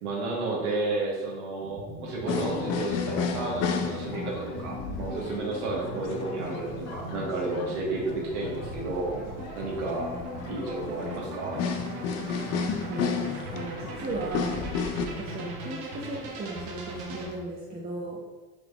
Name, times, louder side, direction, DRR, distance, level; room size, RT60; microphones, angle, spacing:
voice 1, 0.0-9.1 9.5-10.1 10.5-11.6, right 2 dB, 75° right, -2 dB, 1.2 m, -32 dB
sound 1, 1.6-17.3, right 1 dB, 55° right, 0.9 m, -40 dB
sound 2, 2.3-15.1, left 6 dB, 40° left, 0.4 m, -33 dB
voice 2, 12.9-14.6 15.1-18.2, right 2 dB, 20° right, -4 dB, 0.6 m, -36 dB
3.9 x 3.3 x 2.3 m, 1.2 s
hypercardioid pair, 85°, 45 cm